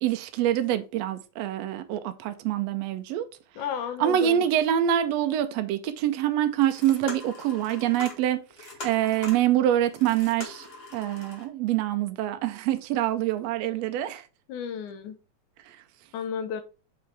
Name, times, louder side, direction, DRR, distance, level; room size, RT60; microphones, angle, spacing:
voice 1, 0.0-3.3 4.0-10.7 10.9-14.2, right 11 dB, 75° right, 1.6 m, -25 dB
voice 2, 3.6-4.4 14.5-15.2 16.1-16.6, left 7 dB, 90° left, 2.4 m, -33 dB
sound 1, 5.9-6.0 6.5-11.5, left 2 dB, 30° left, 1.1 m, -42 dB
6.5 x 4.9 x 3.2 m
omnidirectional pair, 3.5 m